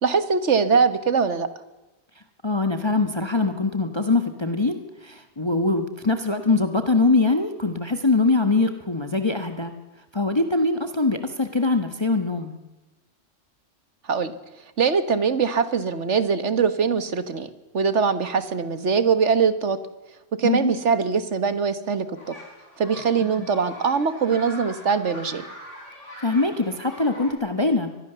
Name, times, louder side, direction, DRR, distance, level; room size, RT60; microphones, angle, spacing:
voice 1, 0.0-1.5 14.1-14.3 14.8-17.5 17.7-19.8 20.3-22.4 22.8-25.4, right 5 dB, 70° right, 12 dB, 1.8 m, -22 dB
voice 2, 2.4-9.7 10.1-12.6 20.4-20.7 23.2-23.5 26.2-27.9, left 3 dB, 20° left, 7 dB, 1.4 m, -23 dB
sound 1, 22.1-27.3, equal, 75° left, 7.0 m, -42 dB
25.0 x 20.0 x 6.9 m, 1.1 s
omnidirectional pair, 1.3 m